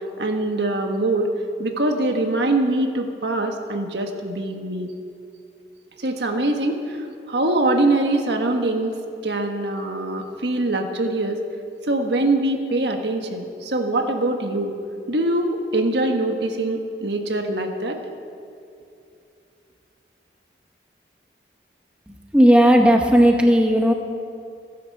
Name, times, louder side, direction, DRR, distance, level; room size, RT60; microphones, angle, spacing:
voice 1, 0.2-1.3 1.6-4.9 6.0-8.9 9.2-11.4 11.9-14.8 15.1-18.0, right 2 dB, 80° right, 4 dB, 1.5 m, -23 dB
voice 2, 22.1-23.9, equal, 5° right, 2 dB, 1.0 m, -15 dB
15.5 x 10.5 x 7.4 m, 2.5 s
head